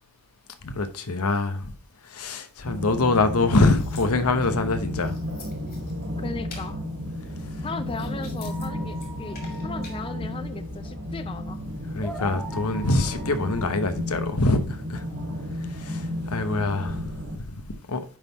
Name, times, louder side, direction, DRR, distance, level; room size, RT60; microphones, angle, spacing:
voice 1, 0.6-1.7 2.0-5.2 11.9-15.0 15.6-18.0, left 2 dB, 85° left, 0.9 m, -25 dB
sound 1, 2.6-17.4, left 1 dB, 75° right, 2.3 m, -33 dB
sound 2, 3.2-4.5 4.9-6.1 6.5-6.7 7.4-8.7 8.9-10.0, left 4 dB, 45° left, 2.5 m, -47 dB
voice 2, 6.2-6.8 7.6-11.6, left 4 dB, 25° left, 0.4 m, -37 dB
sound 3, 8.4-15.0, equal, 5° left, 1.1 m, -42 dB
10.0 x 3.7 x 4.0 m
head